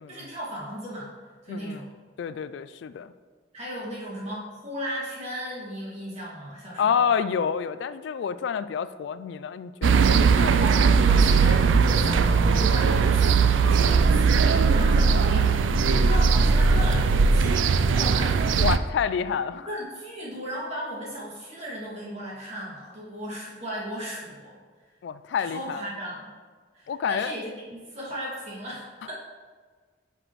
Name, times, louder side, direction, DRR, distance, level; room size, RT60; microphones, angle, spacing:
voice 1, 0.1-1.1 1.4-1.9 3.5-7.1 10.6-18.4 19.7-24.6 25.4-26.3 26.7-29.1, equal, 35° right, -5 dB, 2.2 m, -36 dB
voice 2, 1.5-1.8 2.2-3.1 6.8-10.7 18.6-19.7 25.0-25.8 26.9-27.3, left 7 dB, 70° left, 13 dB, 0.3 m, -28 dB
sound 1, 9.8-18.8, right 5 dB, 90° right, 0.4 m, -19 dB
10.0 x 6.0 x 3.1 m, 1.5 s
head